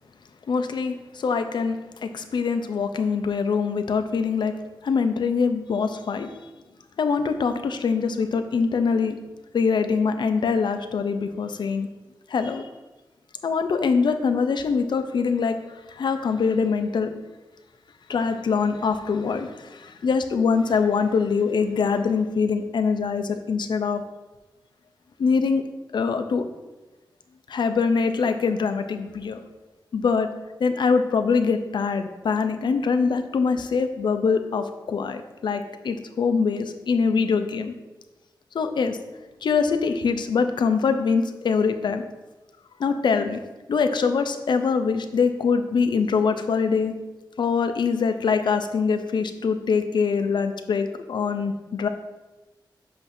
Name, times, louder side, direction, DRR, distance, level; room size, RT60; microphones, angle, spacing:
voice 1, 0.5-4.5 4.8-6.3 7.0-9.2 9.5-11.9 12.3-12.7 13.4-15.6 15.9-17.1 18.1-24.0 25.2-25.6 25.9-26.4 27.5-29.4 29.9-30.3 30.6-37.7 38.5-39.0 39.4-42.1 42.8-43.4 43.7-46.9 47.4-51.9, left 5 dB, 65° left, 8 dB, 0.5 m, -23 dB
7.7 x 2.7 x 5.7 m, 1.1 s
wide cardioid pair, 175°, 8 cm